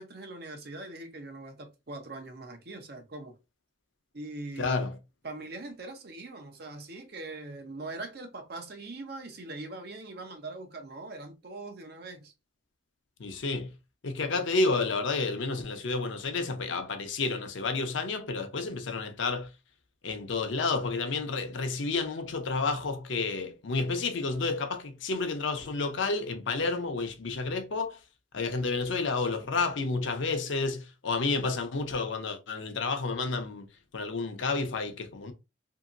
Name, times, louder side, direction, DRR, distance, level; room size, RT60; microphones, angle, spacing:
voice 1, 0.0-3.3 4.1-4.8 5.2-12.3, right 2 dB, 55° right, 0.7 m, -42 dB
voice 2, 4.6-4.9 13.2-13.7 14.0-19.5 20.0-28.0 28.3-33.7 33.9-35.3, left 3 dB, 75° left, 0.6 m, -30 dB
2.8 x 2.8 x 2.5 m
head